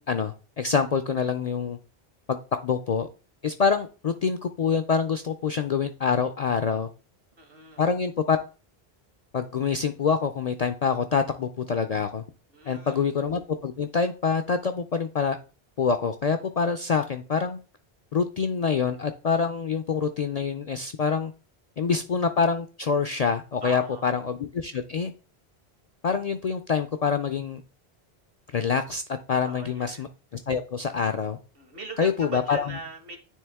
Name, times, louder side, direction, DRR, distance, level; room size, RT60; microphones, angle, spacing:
voice 1, 0.0-1.8 2.3-2.4 2.6-3.1 3.4-6.9 7.8-8.4 9.3-12.2 12.7-15.4 15.8-17.6 18.1-21.3 21.8-25.1 26.0-27.6 28.5-29.0 29.3-30.1 30.5-31.4 32.0-32.7, left 6 dB, 55° left, 9 dB, 0.4 m, -26 dB
voice 2, 7.4-7.8 12.5-13.0 23.6-24.1 29.3-30.1 31.5-33.2, right 3 dB, 65° right, 6 dB, 1.4 m, -41 dB
9.3 x 3.4 x 3.4 m, 0.34 s
omnidirectional pair, 1.1 m